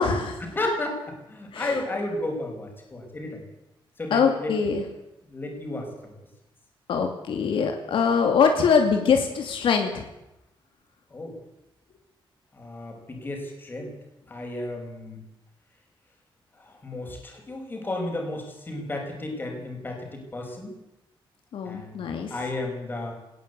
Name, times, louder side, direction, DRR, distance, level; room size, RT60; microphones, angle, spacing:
voice 1, 0.0-0.4 1.5-1.8 4.1-4.8 6.9-10.1 21.5-22.3, left 6 dB, 75° left, 5 dB, 2.6 m, -23 dB
voice 2, 0.5-3.4 4.0-4.5 5.3-6.1 11.1-11.4 12.5-13.9 14.3-15.2 16.6-20.7 21.6-22.0 22.3-23.1, left 2 dB, 25° left, 2 dB, 5.4 m, -33 dB
19.0 x 17.5 x 8.3 m, 0.91 s
wide cardioid pair, 170°, 9 cm